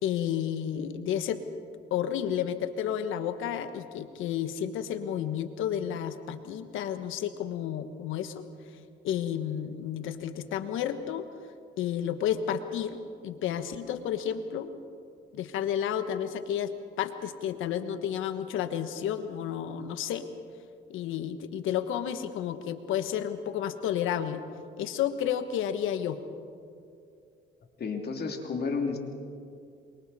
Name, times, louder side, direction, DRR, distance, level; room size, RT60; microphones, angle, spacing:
voice 1, 0.0-1.4 1.9-8.5 9.0-11.3 11.8-13.0 13.2-14.7 15.3-16.7 17.0-20.3 20.9-24.4 24.8-26.2, left 9 dB, 90° left, 9 dB, 1.3 m, -31 dB
voice 2, 27.8-29.0, left 4 dB, 55° left, 2 dB, 2.9 m, -31 dB
27.5 x 24.0 x 4.2 m, 2.4 s
cardioid pair, 90°, 20 cm